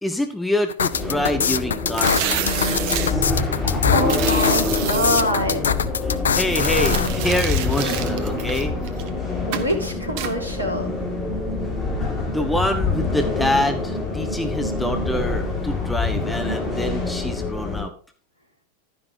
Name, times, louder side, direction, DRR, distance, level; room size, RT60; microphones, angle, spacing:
voice 1, 0.0-3.2 6.3-8.7 12.3-17.9, left 1 dB, 5° left, 5 dB, 1.3 m, -26 dB
sound 1, 0.7-7.1, left 7 dB, 70° left, 0.5 m, -23 dB
sound 2, 0.9-17.8, left 3 dB, 20° left, 5.1 m, -25 dB
sound 3, 1.9-3.1 4.0-5.2 6.4-9.1 9.5-9.7 10.2-10.3, right 10 dB, 45° right, 1.1 m, -29 dB
voice 2, 3.9-5.6 9.5-11.0, equal, 80° right, 5 dB, 2.0 m, -24 dB
11.5 x 10.5 x 2.8 m, 0.42 s
figure-of-eight pair, 90°, 0 cm